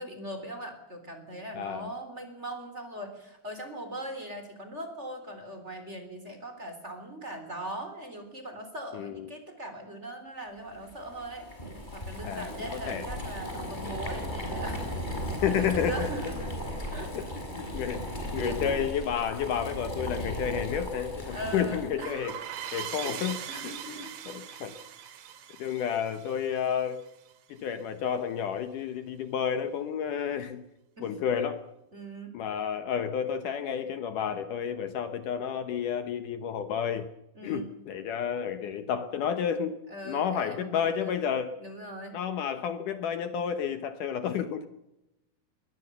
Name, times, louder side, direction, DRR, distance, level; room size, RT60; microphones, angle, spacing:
voice 1, 0.0-11.5 11.9-14.9 15.4-16.5 16.9-17.3 18.4-18.6 21.3-22.1 23.0-23.2 23.5-24.4 31.0-31.1 31.9-32.3 37.4-37.7 39.9-41.1 41.6-42.2, right 1 dB, 20° right, 6 dB, 3.6 m, -40 dB
voice 2, 1.6-1.9 8.9-9.3 12.2-12.5 12.9-13.0 15.4-16.1 17.1-17.2 17.6-18.1 18.3-22.4 22.7-24.7 25.6-27.0 27.5-30.6 31.0-31.6 32.3-37.1 37.4-39.7 40.1-41.5 42.1-44.7, left 8 dB, 70° left, 10 dB, 2.4 m, -31 dB
Boiling, 10.8-22.1, equal, 10° left, 6.0 m, -36 dB
sound 1, 22.0-27.3, right 9 dB, 70° right, 3.5 m, -41 dB
22.0 x 20.5 x 6.9 m, 0.89 s
omnidirectional pair, 4.3 m